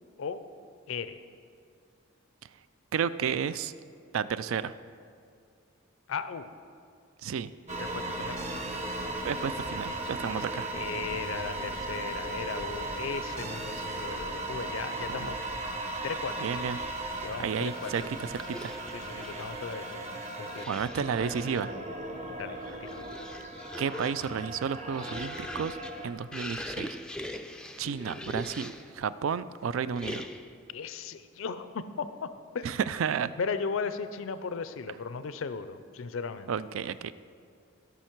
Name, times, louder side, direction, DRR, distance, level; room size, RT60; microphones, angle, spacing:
voice 1, 0.9-1.2 6.1-6.5 7.8-8.4 10.7-15.4 16.0-16.5 17.2-18.1 18.9-20.7 22.4-23.1 30.7-32.8 33.4-36.5, left 5 dB, 75° left, 12 dB, 0.4 m, -37 dB
voice 2, 2.9-3.7 4.1-4.7 7.2-7.5 9.2-10.7 15.1-15.3 16.4-16.8 17.4-18.8 20.7-21.7 23.8-25.8 26.0-26.9 27.8-30.3 32.6-33.3 36.5-37.1, right 7 dB, 80° right, 15 dB, 0.4 m, -32 dB
sound 1, 7.7-26.1, right 2 dB, 35° right, 0.8 m, -37 dB
sound 2, 17.7-19.6 20.5-21.7 22.5-29.0 29.9-30.6, left 1 dB, 5° left, 0.3 m, -42 dB
17.0 x 5.7 x 4.5 m, 2.3 s
head